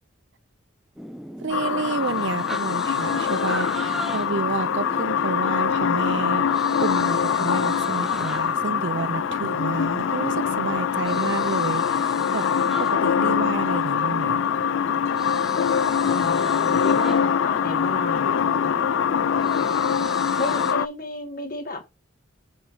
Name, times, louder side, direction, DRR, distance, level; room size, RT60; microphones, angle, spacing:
sound 1, 1.0-20.7, equal, ahead, 0.8 m, -37 dB
voice 1, 1.4-12.5 12.8-14.4, right 4 dB, 65° right, 0.5 m, -30 dB
sound 2, 1.5-20.9, left 7 dB, 75° left, 0.3 m, -23 dB
voice 2, 16.0-18.8 20.4-21.8, left 2 dB, 45° left, 1.6 m, -32 dB
6.3 x 4.6 x 4.0 m
head